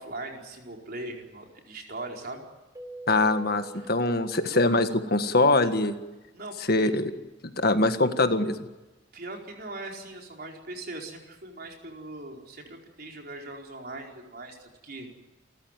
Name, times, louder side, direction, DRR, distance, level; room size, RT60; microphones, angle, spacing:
voice 1, 0.0-2.4 3.8-3.9 6.3-6.6 9.1-15.1, right 2 dB, 50° right, 1 dB, 4.7 m, -40 dB
Keyboard (musical), 2.8-5.3, right 2 dB, 15° right, 2.2 m, -45 dB
voice 2, 3.1-5.9 6.7-7.1 7.6-8.6, left 2 dB, 50° left, 8 dB, 1.6 m, -23 dB
29.0 x 14.5 x 9.2 m, 1.1 s
head